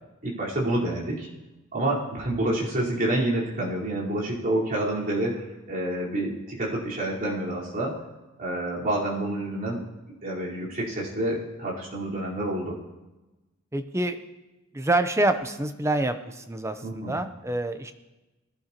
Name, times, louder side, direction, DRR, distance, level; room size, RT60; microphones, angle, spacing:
voice 1, 0.2-1.3 1.7-7.9 8.4-9.8 10.2-12.7 16.8-17.2, right 1 dB, 45° right, -7 dB, 4.4 m, -28 dB
voice 2, 13.7-14.2 14.7-17.9, right 2 dB, 15° right, 8 dB, 0.8 m, -26 dB
20.0 x 11.5 x 3.0 m, 1.1 s
head